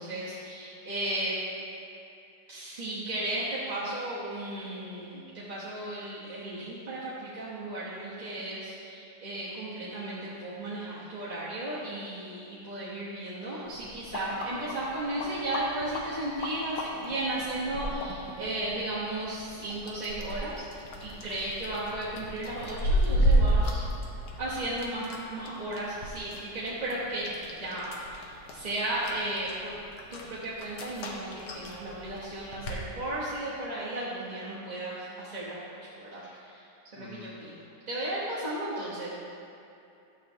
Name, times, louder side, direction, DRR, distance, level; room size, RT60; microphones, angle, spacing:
voice 1, 0.0-1.4 2.5-20.7 21.0-23.8 24.4-27.3 27.6-29.7 30.1-36.6 36.9-37.6 37.9-39.1, right 1 dB, 30° right, -10 dB, 1.0 m, -35 dB
sound 1, 13.7-32.8, right 1 dB, 65° left, 1.4 m, -33 dB
voice 2, 37.0-37.4 38.0-38.1 38.8-38.9, left 4 dB, 80° left, -3 dB, 1.9 m, -48 dB
12.0 x 7.4 x 2.8 m, 2.7 s
omnidirectional pair, 2.0 m